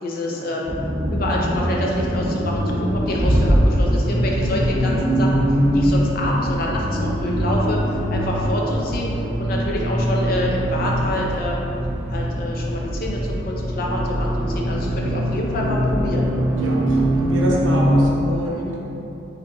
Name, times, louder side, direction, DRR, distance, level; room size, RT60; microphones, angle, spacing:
voice 1, 0.0-0.7 1.1-5.4 5.7-7.8 8.1-9.1 9.4-11.7 12.1-16.3 18.5-18.7, left 1 dB, 45° left, -2 dB, 0.5 m, -27 dB
Accelerating revving vroom, 0.7-18.1, equal, 10° right, 0.3 m, -22 dB
voice 2, 16.5-18.8, right 1 dB, 80° right, -3 dB, 0.7 m, -27 dB
4.4 x 3.6 x 2.3 m, 2.8 s
head